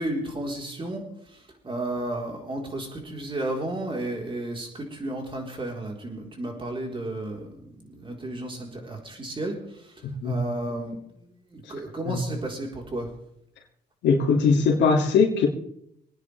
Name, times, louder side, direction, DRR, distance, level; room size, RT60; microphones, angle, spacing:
voice 1, 0.0-9.6 9.8-9.9 10.2-13.1, right 1 dB, 30° right, 0 dB, 4.3 m, -33 dB
voice 2, 14.0-15.5, left 5 dB, 85° left, -1 dB, 2.7 m, -20 dB
24.5 x 9.8 x 3.5 m, 0.72 s
cardioid pair, 95°, 18 cm